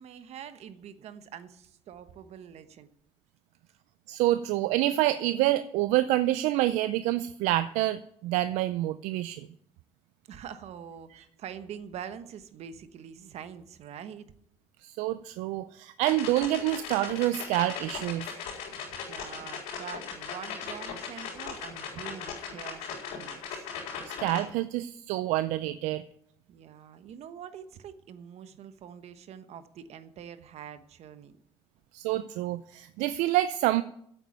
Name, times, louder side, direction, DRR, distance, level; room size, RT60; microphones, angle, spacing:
voice 1, 0.0-2.9 10.3-14.3 18.7-23.7 26.5-31.4, right 8 dB, 65° right, 11 dB, 1.1 m, -45 dB
voice 2, 4.1-9.5 14.8-18.3 24.2-26.0 31.9-33.8, right 15 dB, 85° right, 13 dB, 0.4 m, -27 dB
sound 1, 16.0-24.4, left 6 dB, 85° left, 4.1 m, -38 dB
8.3 x 8.1 x 9.1 m, 0.70 s
supercardioid pair, 75°, 12 cm